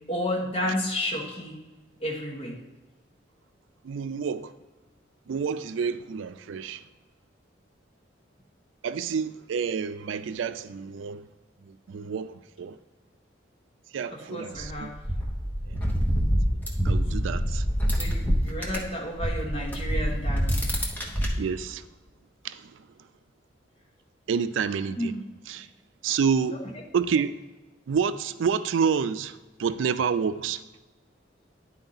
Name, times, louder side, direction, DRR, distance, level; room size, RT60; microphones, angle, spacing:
voice 1, 0.0-1.6 2.0-2.6 14.1-15.0 17.9-20.7 25.0-25.2 26.5-26.8, left 1 dB, 30° left, 1.1 m, -32 dB
voice 2, 3.8-4.5 5.3-6.8 8.8-11.2 11.6-12.8 13.9-14.9 15.7-15.8 16.8-17.7 21.4-21.9 22.4-22.8 24.3-25.1 25.5-25.7 26.0-26.6 26.9-27.4 27.9-30.6, right 6 dB, 90° right, 0.4 m, -28 dB
sound 1, 14.6-18.9 19.2-21.3, equal, 10° left, 0.9 m, -26 dB
10.0 x 4.5 x 3.9 m
head